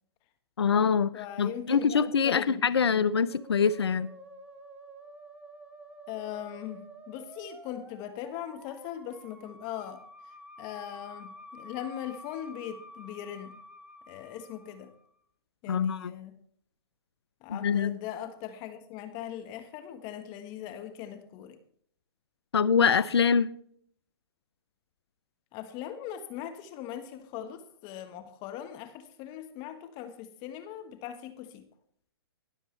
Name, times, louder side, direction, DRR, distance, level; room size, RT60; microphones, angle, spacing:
voice 1, 0.6-1.1 1.4-4.1 15.7-16.1 17.5-17.9 22.5-23.5, left 6 dB, 85° left, 0.7 m, -24 dB
voice 2, 1.1-3.2 6.1-13.6 14.1-14.9 15.6-16.4 17.4-21.6 25.5-31.7, left 10 dB, 35° left, 1.3 m, -40 dB
Musical instrument, 3.3-15.1, equal, 10° right, 1.4 m, -50 dB
21.0 x 7.3 x 3.2 m
hypercardioid pair, 130°, 13 cm